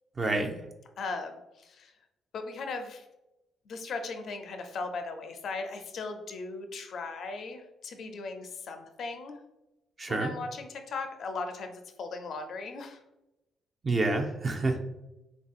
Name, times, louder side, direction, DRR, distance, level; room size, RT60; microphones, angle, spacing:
voice 1, 0.2-0.5 10.0-10.3 13.8-14.8, right 2 dB, 35° right, 4 dB, 0.5 m, -28 dB
voice 2, 1.0-1.9 2.3-3.0 3.7-9.4 10.1-13.0, left 3 dB, 60° left, 6 dB, 0.4 m, -38 dB
3.3 x 2.7 x 2.4 m, 0.94 s
cardioid pair, 90°, 0 cm